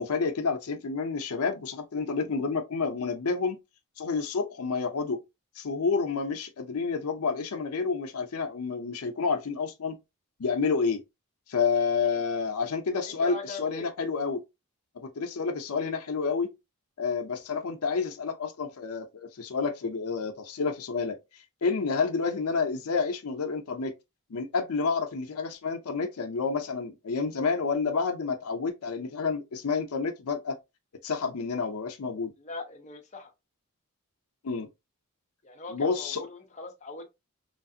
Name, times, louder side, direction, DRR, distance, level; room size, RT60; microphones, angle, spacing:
voice 1, 0.0-3.6 4.0-5.2 5.6-10.0 10.4-11.0 11.5-14.4 15.0-16.5 17.0-21.2 21.6-23.9 24.3-30.6 31.0-32.3 34.4-34.7 35.7-36.2, left 5 dB, 85° left, 0.6 m, -29 dB
voice 2, 13.0-13.9 21.9-22.1 32.4-33.3 35.4-37.1, left 3 dB, 30° left, 0.6 m, -41 dB
3.2 x 2.4 x 2.6 m
head